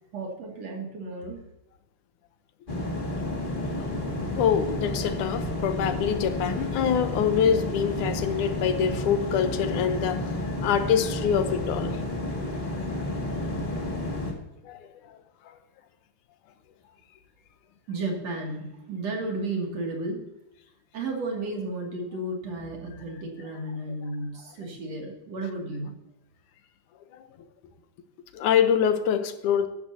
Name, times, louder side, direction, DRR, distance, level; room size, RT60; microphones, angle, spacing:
voice 1, 0.1-1.4 17.9-20.2 20.9-25.9, right 2 dB, 60° right, 3.6 m, -33 dB
sound 1, 2.7-14.3, left 1 dB, 20° left, 2.0 m, -31 dB
voice 2, 4.4-12.0 14.6-15.2 28.3-29.7, left 8 dB, 90° left, 2.5 m, -25 dB
13.5 x 12.5 x 2.8 m
omnidirectional pair, 3.4 m